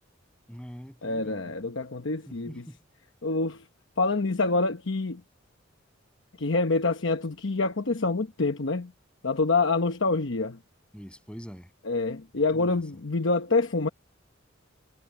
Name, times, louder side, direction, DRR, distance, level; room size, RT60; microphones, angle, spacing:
voice 1, 0.5-1.5 2.3-2.8 10.9-11.7 12.3-12.8, equal, 5° left, 7.9 m, -44 dB
voice 2, 1.0-2.6 3.2-3.6 4.0-5.2 6.4-8.9 9.2-10.6 11.9-13.9, left 3 dB, 65° left, 1.0 m, -26 dB
head